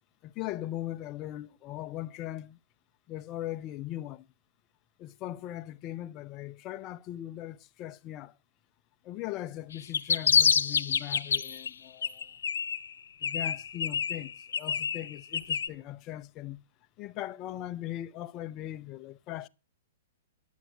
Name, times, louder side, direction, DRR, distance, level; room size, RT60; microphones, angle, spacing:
voice 1, 0.2-2.6 3.1-4.3 5.0-8.3 9.0-12.3 13.2-16.6 17.0-19.5, left 14 dB, 35° left, 0.7 m, -39 dB
sound 1, 9.7-11.7 12.0-12.9 13.2-15.7, left 7 dB, 80° left, 0.8 m, -27 dB
10.5 x 8.3 x 7.9 m
hypercardioid pair, 125°, 0 cm